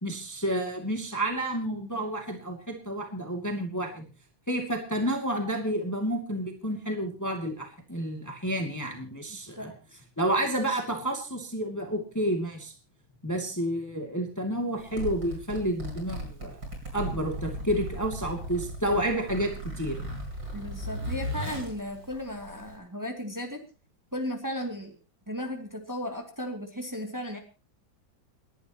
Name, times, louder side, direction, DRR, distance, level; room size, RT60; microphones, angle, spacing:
voice 1, 0.0-4.0 4.5-9.7 10.2-12.7 13.2-16.6 16.9-20.0, right 1 dB, 10° left, 3 dB, 2.4 m, -30 dB
Zipper (clothing), 14.8-22.8, right 1 dB, 65° right, 8.0 m, -36 dB
voice 2, 20.5-23.6 24.1-24.9 25.3-27.4, left 1 dB, 10° right, 3 dB, 2.5 m, -35 dB
29.5 x 11.5 x 3.0 m, 0.34 s
omnidirectional pair, 2.1 m